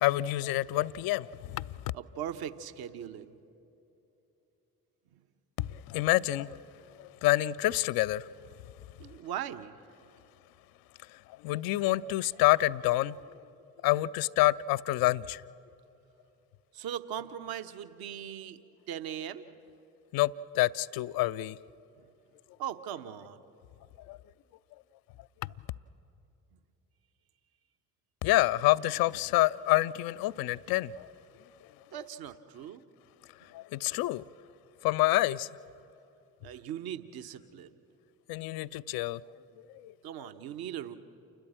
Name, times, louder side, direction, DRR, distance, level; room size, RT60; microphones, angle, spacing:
voice 1, 0.0-1.6 5.6-6.6 7.0-8.2 11.4-13.2 13.8-15.4 20.1-21.6 24.1-24.2 28.2-31.1 33.5-34.2 34.8-35.5 38.3-39.2 39.7-39.9, left 17 dB, 50° left, 17 dB, 0.6 m, -27 dB
voice 2, 1.9-3.4 9.0-9.7 16.7-18.6 18.9-19.4 22.6-23.4 31.9-32.8 36.4-37.7 40.0-41.0, right 10 dB, 50° right, 10 dB, 1.1 m, -39 dB
29.0 x 12.5 x 7.5 m, 2.9 s
figure-of-eight pair, 40°, 46 cm